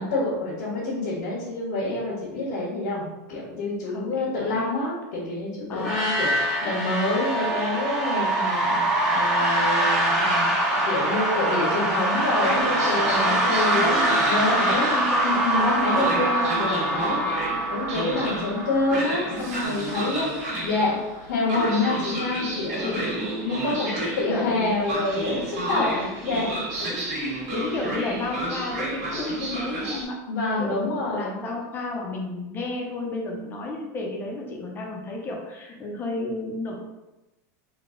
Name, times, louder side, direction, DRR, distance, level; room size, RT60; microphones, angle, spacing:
voice 1, 0.0-14.9 15.2-17.2 17.7-23.0 23.4-26.6 30.3-31.4, left 2 dB, 90° left, -7 dB, 1.5 m, -27 dB
voice 2, 3.9-4.7 5.7-6.1 13.1-13.9 14.5-15.4 15.9-16.2 17.0-17.2 20.0-20.2 21.9-22.0 22.8-23.6 24.2-24.8 25.7-26.1 26.7-30.2 30.6-36.8, left 2 dB, 20° left, -1 dB, 0.7 m, -33 dB
sound 1, 5.8-19.5, right 1 dB, 5° right, 0.8 m, -24 dB
Train, 12.3-30.0, right 1 dB, 55° right, 1.5 m, -32 dB
3.8 x 2.4 x 3.7 m, 1.0 s
supercardioid pair, 155°, 10 cm